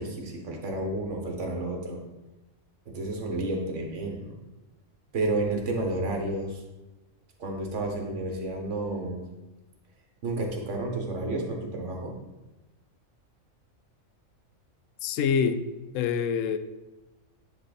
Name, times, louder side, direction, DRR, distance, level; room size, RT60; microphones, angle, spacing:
voice 1, 0.0-2.0 2.9-4.3 5.1-6.6 7.4-9.2 10.2-12.1, right 2 dB, 60° right, 2 dB, 1.5 m, -31 dB
voice 2, 15.0-15.6 15.9-16.6, left 7 dB, 75° left, 11 dB, 0.9 m, -25 dB
9.7 x 3.6 x 4.0 m, 1.1 s
omnidirectional pair, 1.4 m